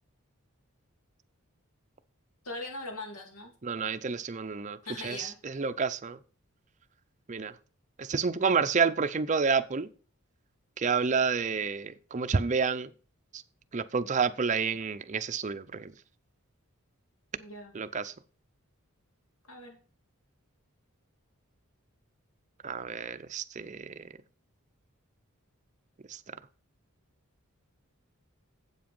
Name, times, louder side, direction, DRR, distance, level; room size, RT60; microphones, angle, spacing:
voice 1, 2.4-3.5 4.8-5.4 17.4-17.7 19.5-19.8, left 2 dB, 85° left, 2.9 m, -40 dB
voice 2, 3.6-4.8 5.0-6.2 7.3-7.5 8.0-9.9 10.8-12.9 13.3-13.4 13.7-15.9 17.7-18.1 22.6-24.1 26.1-26.2, right 5 dB, 35° right, 0.5 m, -29 dB
8.0 x 7.7 x 5.4 m
head